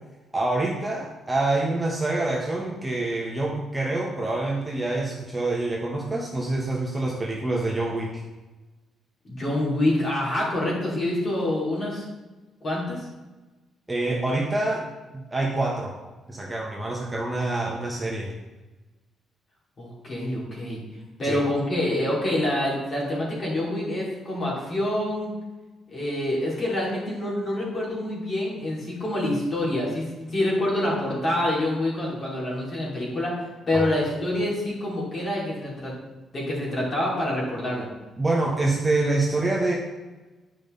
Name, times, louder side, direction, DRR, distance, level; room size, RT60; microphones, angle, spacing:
voice 1, 0.3-8.2 13.9-14.9 15.1-16.0 16.3-18.3 21.2-21.4 33.7-33.8 38.2-39.7, right 2 dB, 10° right, -3 dB, 1.1 m, -26 dB
voice 2, 9.2-12.0 12.6-13.0 19.8-20.8 21.2-25.3 25.9-33.3 33.7-35.9 36.3-37.9, left 1 dB, 35° left, -4 dB, 3.0 m, -26 dB
10.0 x 5.3 x 3.9 m, 1.1 s
cardioid pair, 145°, 0 cm